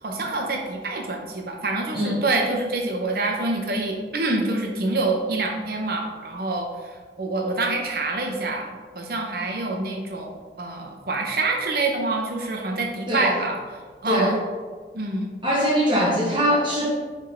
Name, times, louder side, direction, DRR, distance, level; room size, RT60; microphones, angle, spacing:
voice 1, 0.0-13.6 14.0-14.4 14.9-15.3, right 2 dB, 60° right, 1 dB, 0.9 m, -26 dB
voice 2, 15.4-17.0, equal, 30° right, -5 dB, 1.1 m, -22 dB
6.1 x 3.6 x 4.4 m, 1.5 s
head